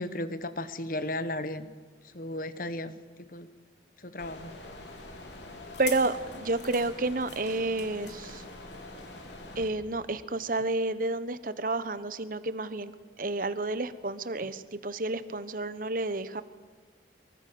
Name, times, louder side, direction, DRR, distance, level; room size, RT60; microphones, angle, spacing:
voice 1, 0.0-1.7 2.1-2.9 3.3-3.5 4.0-4.5, left 1 dB, 50° left, 13 dB, 1.3 m, -34 dB
sound 1, 4.2-9.7, left 3 dB, 80° left, 3.9 m, -43 dB
voice 2, 5.8-8.4 9.6-12.9 13.2-16.4, right 2 dB, 50° right, 13 dB, 1.1 m, -30 dB
23.5 x 23.5 x 7.0 m, 1.5 s
head